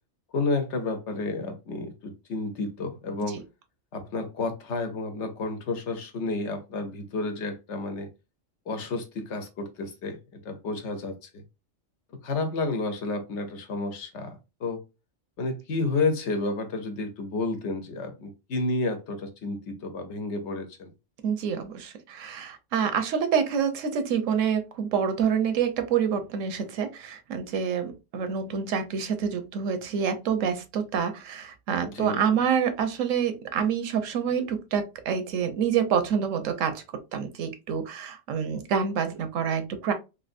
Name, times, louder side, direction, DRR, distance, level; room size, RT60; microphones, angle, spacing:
voice 1, 0.3-3.4 3.9-8.1 8.7-10.2 10.4-11.4 12.2-14.8 15.4-20.9 31.8-32.2, left 3 dB, 65° left, 1.0 m, -31 dB
voice 2, 21.2-36.8 37.1-39.9, right 7 dB, 90° right, 1.1 m, -27 dB
3.3 x 2.7 x 2.5 m
omnidirectional pair, 1.3 m